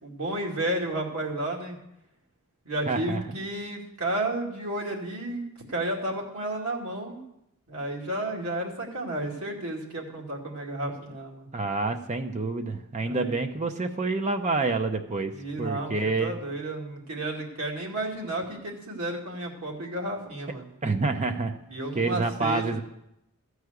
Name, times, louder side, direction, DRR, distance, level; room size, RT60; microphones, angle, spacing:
voice 1, 0.0-1.8 2.7-5.4 5.7-7.2 7.7-11.5 13.0-13.4 15.3-20.7 21.7-22.8, right 1 dB, 85° right, -1 dB, 2.4 m, -32 dB
voice 2, 2.9-3.2 11.5-15.3 15.6-16.4 20.8-21.5 22.0-22.8, right 3 dB, 30° right, 7 dB, 0.7 m, -27 dB
14.0 x 4.8 x 8.0 m, 0.84 s
head